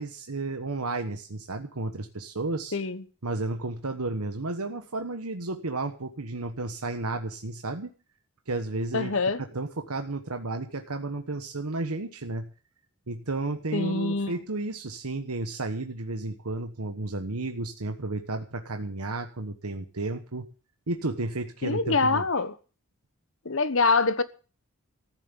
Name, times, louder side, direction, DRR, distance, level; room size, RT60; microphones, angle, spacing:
voice 1, 0.0-2.8 3.2-7.9 8.5-9.1 9.5-12.5 13.1-20.4 20.9-22.2, right 2 dB, 90° right, 1.3 m, -32 dB
voice 2, 2.7-3.0 8.9-9.4 13.7-14.3 21.6-22.5 23.4-24.2, left 3 dB, 60° left, 1.2 m, -25 dB
14.5 x 7.4 x 9.8 m
head